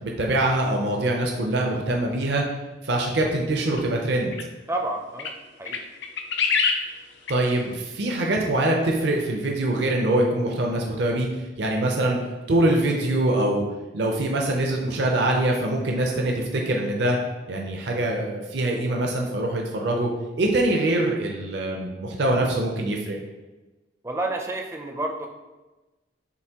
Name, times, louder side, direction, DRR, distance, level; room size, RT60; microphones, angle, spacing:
voice 1, 0.0-2.4 2.8-4.4 7.3-12.2 12.5-13.6 13.9-17.2 17.5-20.1 20.4-23.2, right 1 dB, 65° right, 0 dB, 0.6 m, -24 dB
sound 1, 3.7-3.8 4.3-4.4 5.2-5.3 5.6-6.9 7.3-7.4, left 5 dB, 70° left, 0.5 m, -24 dB
voice 2, 4.7-5.8 24.0-25.3, right 2 dB, 15° right, 2 dB, 0.4 m, -30 dB
6.8 x 2.6 x 2.9 m, 1.1 s
head